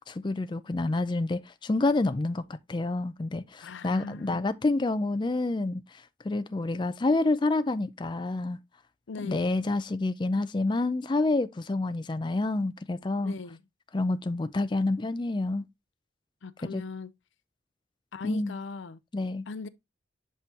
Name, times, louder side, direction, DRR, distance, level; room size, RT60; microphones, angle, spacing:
voice 1, 0.1-2.4 2.7-8.6 9.2-13.3 13.9-15.6 16.6-16.8 18.2-18.5 19.1-19.4, left 2 dB, 25° left, 0.4 m, -28 dB
voice 2, 3.6-4.5 9.1-9.5 13.2-13.6 16.4-17.1 18.1-19.0 19.5-19.7, left 4 dB, 80° left, 0.5 m, -39 dB
7.5 x 5.5 x 2.8 m
head